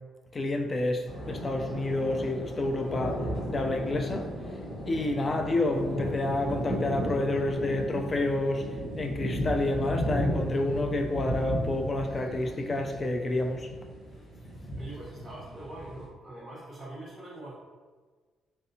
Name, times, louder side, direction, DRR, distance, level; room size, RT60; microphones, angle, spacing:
voice 1, 0.3-4.3 4.9-8.7 9.0-13.7, left 2 dB, 35° left, 4 dB, 0.4 m, -29 dB
sound 1, 1.1-16.1, equal, 50° left, 1.3 m, -35 dB
voice 2, 14.8-17.5, right 2 dB, 15° right, -12 dB, 1.1 m, -43 dB
3.2 x 2.6 x 2.7 m, 1.4 s
cardioid pair, 90°, 0 cm